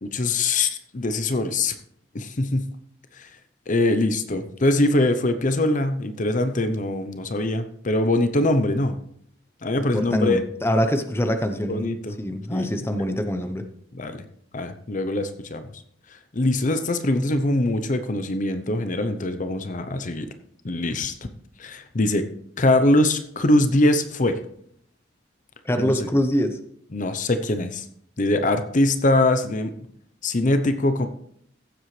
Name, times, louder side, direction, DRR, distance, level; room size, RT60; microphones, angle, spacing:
voice 1, 0.0-1.7 2.1-2.6 3.2-3.3 3.7-9.0 9.6-10.4 11.7-12.2 12.5-13.1 13.9-14.2 14.5-15.7 16.3-20.3 20.6-21.1 21.6-22.2 22.6-24.4 25.8-26.1 26.9-27.9 28.2-29.7 30.2-31.1, left 2 dB, 45° left, 9 dB, 0.7 m, -23 dB
voice 2, 9.9-11.9 12.2-13.6 25.6-26.6, equal, 15° left, 7 dB, 0.8 m, -24 dB
15.0 x 7.9 x 3.3 m, 0.66 s
head